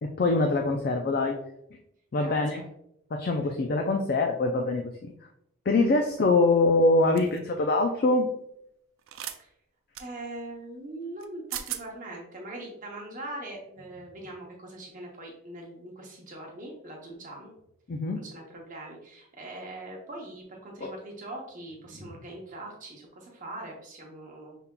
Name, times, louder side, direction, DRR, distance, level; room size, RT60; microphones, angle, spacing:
voice 1, 0.0-1.3 1.7-1.8 2.1-2.6 3.1-5.1 5.7-8.3 17.9-18.2 20.8-20.9, left 2 dB, 45° left, 3 dB, 0.3 m, -24 dB
voice 2, 2.2-2.6 3.4-3.5 9.4-9.5 10.0-17.5 18.1-24.6, right 1 dB, 35° right, -1 dB, 0.7 m, -42 dB
sound 1, 7.2-7.4 9.1-9.4 9.9-10.1 11.2-11.3 11.5-11.8, right 11 dB, 65° right, 0.4 m, -36 dB
5.6 x 3.6 x 2.2 m, 0.76 s
head